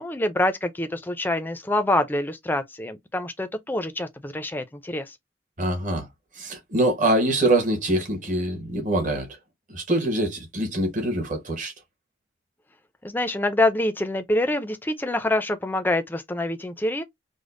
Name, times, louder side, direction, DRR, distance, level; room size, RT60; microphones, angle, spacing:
voice 1, 0.0-5.1 13.0-17.0, left 1 dB, 10° left, 0.4 m, -26 dB
voice 2, 5.6-6.1 6.4-9.3 9.7-11.7, right 1 dB, 45° right, 1.1 m, -24 dB
5.0 x 2.0 x 2.5 m
head